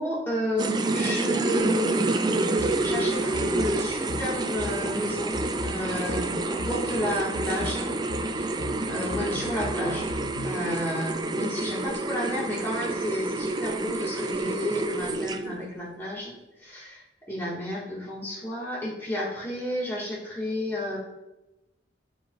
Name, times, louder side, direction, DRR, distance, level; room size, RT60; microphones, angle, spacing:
voice 1, 0.0-2.1 2.8-7.9 8.3-8.6 8.9-10.1 10.4-17.0 17.3-21.0, left 1 dB, 15° left, -7 dB, 1.9 m, -31 dB
sound 1, 0.6-15.7, right 2 dB, 20° right, 0.4 m, -28 dB
sound 2, 2.6-10.6, left 3 dB, 80° left, 0.6 m, -39 dB
13.0 x 4.8 x 2.5 m, 0.98 s
head